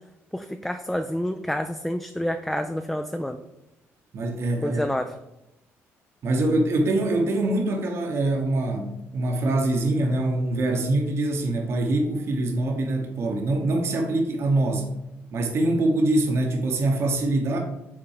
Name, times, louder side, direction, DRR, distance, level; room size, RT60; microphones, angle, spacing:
voice 1, 0.3-3.4 4.6-5.2, equal, 5° left, 6 dB, 0.3 m, -28 dB
voice 2, 4.1-4.8 6.2-14.9 15.3-17.6, right 2 dB, 55° right, 3 dB, 1.1 m, -24 dB
5.9 x 3.7 x 4.8 m, 0.90 s
cardioid pair, 100°, 5 cm